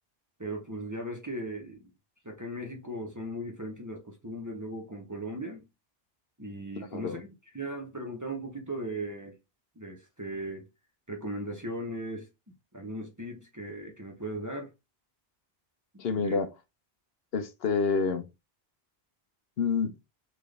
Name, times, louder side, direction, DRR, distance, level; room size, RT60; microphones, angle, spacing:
voice 1, 0.4-1.9 2.2-5.7 6.4-9.4 9.8-10.7 11.1-12.3 12.7-14.7 15.9-16.4, right 1 dB, 20° right, 0.7 m, -38 dB
voice 2, 6.8-7.2 16.0-16.5 17.3-18.3 19.6-20.0, left 5 dB, 75° left, 0.9 m, -28 dB
3.8 x 2.4 x 3.2 m
omnidirectional pair, 1.0 m